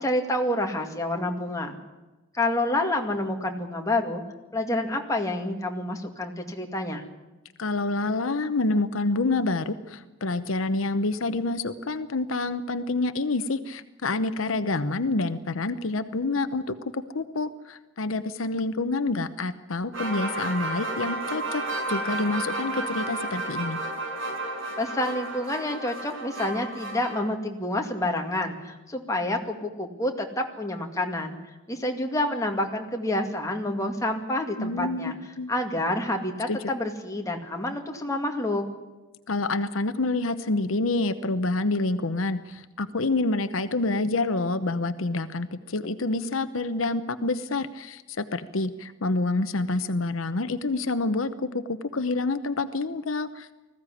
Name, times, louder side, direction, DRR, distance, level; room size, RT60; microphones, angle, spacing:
voice 1, 0.0-1.8 2.3-4.2 4.5-7.0 24.8-31.4 31.7-35.2 35.5-38.6, left 1 dB, 15° left, 2 dB, 2.2 m, -28 dB
voice 2, 7.6-21.6 21.9-23.8 34.6-35.5 36.5-36.6 39.3-53.5, left 2 dB, 75° left, 11 dB, 0.9 m, -27 dB
sound 1, 19.9-27.2, right 2 dB, 75° right, 6.4 m, -32 dB
20.0 x 15.0 x 9.9 m, 1.1 s
head